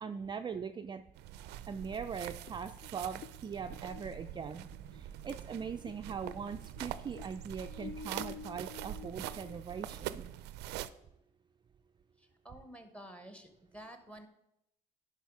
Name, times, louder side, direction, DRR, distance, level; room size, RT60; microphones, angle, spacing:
voice 1, 0.0-1.0 1.7-4.6 4.9-10.2, right 6 dB, 25° right, 7 dB, 0.4 m, -41 dB
sound 1, 1.1-10.9, right 13 dB, 85° right, 0.4 m, -44 dB
sound 2, 2.5-6.0 6.3-10.4, left 7 dB, 50° left, 0.4 m, -50 dB
voice 2, 12.2-14.3, right 1 dB, 5° left, 7 dB, 1.2 m, -51 dB
10.0 x 5.5 x 4.7 m, 0.84 s
cardioid pair, 110°, 17 cm